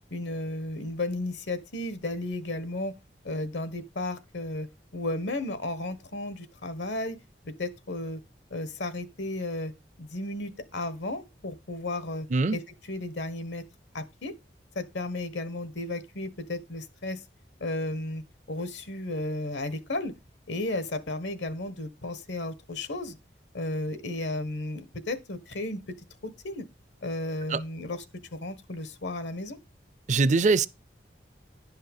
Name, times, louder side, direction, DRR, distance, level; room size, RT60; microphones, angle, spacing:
voice 1, 0.1-2.9 3.2-4.7 4.9-7.2 7.4-8.2 8.5-9.7 10.0-12.6 12.9-13.6 13.9-14.3 14.7-17.2 17.6-20.1 20.5-23.2 23.5-25.9 26.2-26.6 27.0-28.0 28.3-29.6, left 2 dB, 80° left, 1.2 m, -34 dB
voice 2, 30.1-30.7, right 3 dB, 40° right, 0.4 m, -22 dB
11.0 x 5.6 x 5.3 m
head